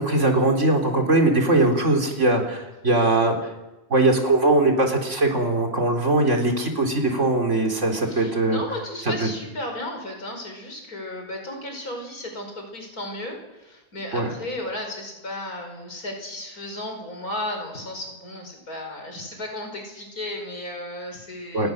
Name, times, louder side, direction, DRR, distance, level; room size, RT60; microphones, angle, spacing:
voice 1, 0.0-3.5 3.9-8.6 9.2-9.3 14.1-14.3 21.5-21.7, right 2 dB, 55° right, 2 dB, 4.0 m, -21 dB
voice 2, 8.1-21.7, left 1 dB, 85° left, 3 dB, 5.8 m, -34 dB
29.5 x 18.0 x 6.6 m, 1.0 s
omnidirectional pair, 1.5 m